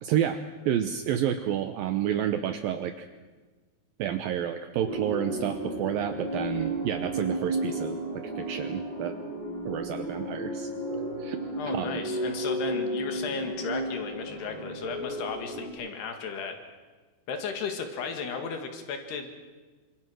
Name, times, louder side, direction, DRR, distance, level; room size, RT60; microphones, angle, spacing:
voice 1, 0.0-3.1 4.0-9.1 9.7-10.7 11.2-11.4 11.7-12.0, right 10 dB, 70° right, 8 dB, 2.5 m, -30 dB
sound 1, 4.8-15.7, right 1 dB, 15° right, 8.1 m, -33 dB
voice 2, 11.6-16.6 17.3-19.3, left 5 dB, 85° left, 5 dB, 4.1 m, -35 dB
28.0 x 25.5 x 6.3 m, 1.3 s
omnidirectional pair, 4.6 m